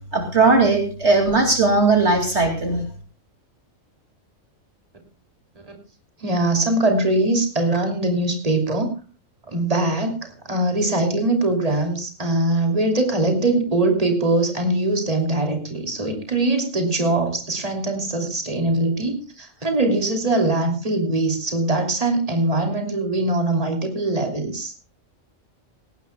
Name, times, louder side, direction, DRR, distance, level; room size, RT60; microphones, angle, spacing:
voice 1, 0.1-2.8, right 3 dB, 55° right, 4 dB, 2.7 m, -18 dB
voice 2, 6.2-8.9 9.5-24.7, right 2 dB, 25° right, 4 dB, 3.0 m, -22 dB
18.0 x 18.0 x 2.3 m, 0.34 s
omnidirectional pair, 1.4 m